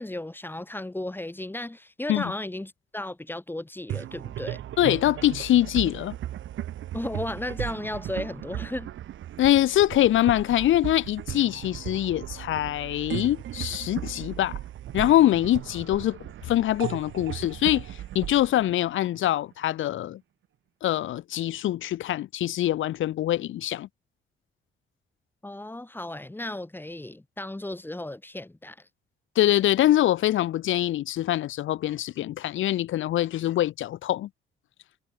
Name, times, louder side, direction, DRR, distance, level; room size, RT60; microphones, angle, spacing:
voice 1, 0.0-4.6 6.9-8.9 25.4-28.9, left 1 dB, 10° left, 4.0 m, -35 dB
sound 1, 3.9-19.5, right 12 dB, 75° right, 3.9 m, -37 dB
voice 2, 4.8-6.1 9.4-14.6 14.9-16.2 16.4-20.2 20.8-23.9 29.4-34.3, left 13 dB, 80° left, 2.0 m, -24 dB
cardioid pair, 90°, 20 cm